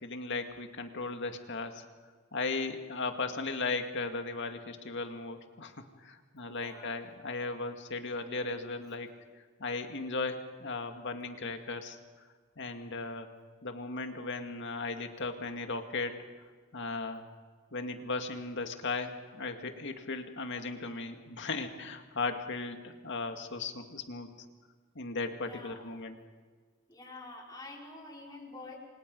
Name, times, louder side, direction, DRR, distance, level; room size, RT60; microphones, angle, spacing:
voice 1, 0.0-1.8 2.3-9.1 9.6-12.0 12.6-13.3 13.6-16.2 16.7-17.3 17.7-24.3 25.0-26.2, left 3 dB, 55° left, 6 dB, 2.1 m, -36 dB
voice 2, 6.5-6.9 8.3-8.6 25.4-25.9 26.9-28.8, left 2 dB, 20° left, -2 dB, 4.9 m, -48 dB
29.0 x 25.0 x 5.4 m, 1.5 s
head